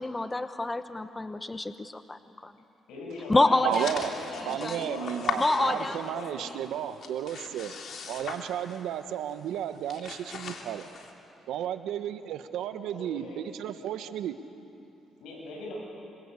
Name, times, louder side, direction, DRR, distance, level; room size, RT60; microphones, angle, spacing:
voice 1, 0.0-2.5 3.3-3.9 4.6-4.9 5.4-6.0, left 2 dB, 15° left, 10 dB, 1.0 m, -27 dB
voice 2, 2.9-6.8 12.9-13.4 15.2-15.8, left 2 dB, 90° left, -2 dB, 7.9 m, -40 dB
voice 3, 3.6-4.1 4.4-7.8 8.1-10.9 11.5-14.3, right 10 dB, 85° right, 10 dB, 1.2 m, -33 dB
sound 1, 3.7-6.2 6.5-9.0 9.3-9.5 9.8-11.1, left 5 dB, 65° left, 3.0 m, -38 dB
26.5 x 25.5 x 8.3 m, 2.8 s
cardioid pair, 90°, 0 cm